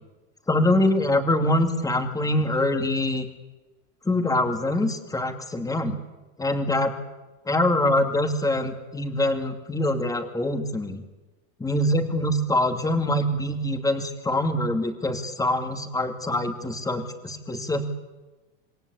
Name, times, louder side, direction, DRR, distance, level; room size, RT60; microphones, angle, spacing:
voice 1, 0.5-3.3 4.0-6.0 6.4-6.9 7.5-11.0 11.6-17.9, left 1 dB, 10° left, 6 dB, 2.4 m, -24 dB
27.0 x 22.0 x 8.4 m, 1.2 s
supercardioid pair, 150°, 39 cm